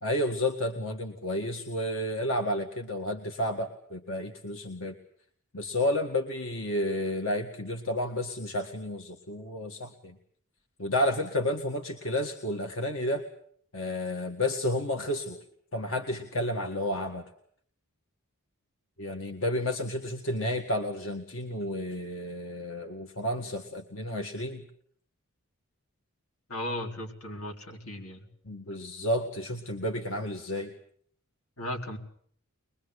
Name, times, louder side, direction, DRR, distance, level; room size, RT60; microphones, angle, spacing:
voice 1, 0.0-5.0 5.5-10.2 10.8-13.3 13.7-15.4 15.7-17.2 19.0-24.7 28.5-30.7, left 1 dB, 65° left, 4 dB, 1.9 m, -31 dB
voice 2, 26.5-28.2 31.6-32.0, left 1 dB, 85° left, 2 dB, 4.7 m, -36 dB
24.0 x 22.0 x 8.2 m, 0.64 s
head